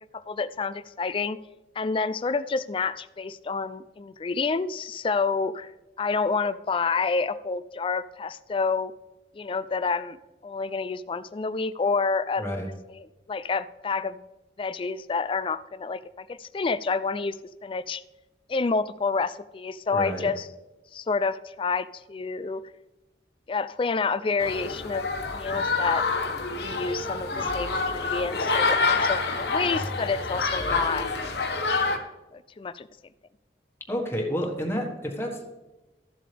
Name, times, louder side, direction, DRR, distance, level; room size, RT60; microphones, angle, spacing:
voice 1, 0.1-1.4 1.8-5.7 6.0-8.9 9.3-10.2 10.4-12.4 12.9-14.2 14.6-17.4 17.6-18.0 18.5-20.5 20.9-22.6 23.5-25.1 25.3-26.0 26.6-31.1 32.3-32.9, left 4 dB, 30° left, 14 dB, 0.3 m, -28 dB
voice 2, 19.9-20.3 27.3-27.5 28.9-29.0 30.7-30.9 33.9-35.4, equal, 15° left, 0 dB, 1.5 m, -30 dB
sound 1, 24.4-32.0, left 4 dB, 65° left, 1.2 m, -27 dB
14.5 x 7.4 x 3.4 m, 1.1 s
head